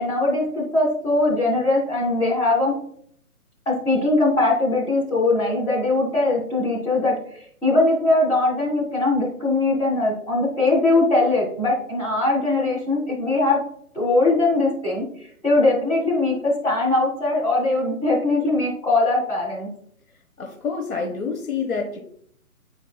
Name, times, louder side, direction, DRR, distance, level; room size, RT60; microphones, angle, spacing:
voice 1, 0.0-2.7 3.6-13.6 13.9-19.7, left 2 dB, 10° left, -7 dB, 1.5 m, -21 dB
voice 2, 20.4-22.0, left 5 dB, 65° left, 1 dB, 1.3 m, -27 dB
10.5 x 4.5 x 2.2 m, 0.65 s
figure-of-eight pair, 140°, 46 cm